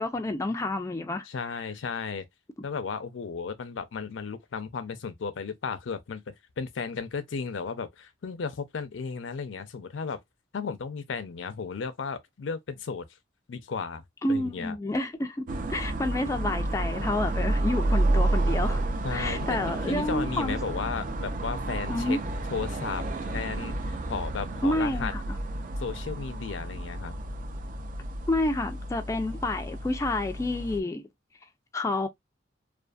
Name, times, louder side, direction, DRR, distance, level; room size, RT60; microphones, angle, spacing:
voice 1, 0.0-1.3 14.2-18.8 19.1-20.6 21.9-22.2 24.6-25.4 28.3-31.0 31.7-32.1, left 1 dB, 15° left, 0.3 m, -29 dB
voice 2, 1.3-2.3 2.6-6.2 6.6-10.2 10.5-13.0 13.5-14.0 14.3-14.8 19.0-22.2 22.5-25.1 25.8-27.1, left 5 dB, 80° left, 0.5 m, -34 dB
sound 1, 15.5-30.8, right 2 dB, 45° right, 0.4 m, -30 dB
2.5 x 2.4 x 2.3 m
head